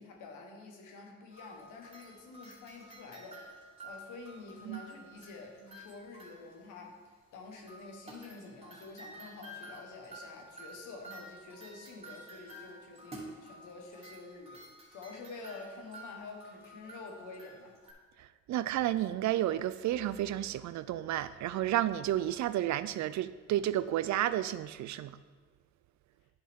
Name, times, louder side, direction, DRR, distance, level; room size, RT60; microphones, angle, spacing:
voice 1, 0.0-3.5 3.8-14.6 14.9-17.7, left 3 dB, 85° left, 1 dB, 1.5 m, -48 dB
sound 1, 1.3-6.7 7.7-17.9, right 1 dB, 20° right, 2.2 m, -51 dB
voice 2, 18.5-25.1, right 13 dB, 70° right, 15 dB, 0.4 m, -31 dB
10.0 x 5.6 x 3.7 m, 1.5 s
cardioid pair, 90°, 30 cm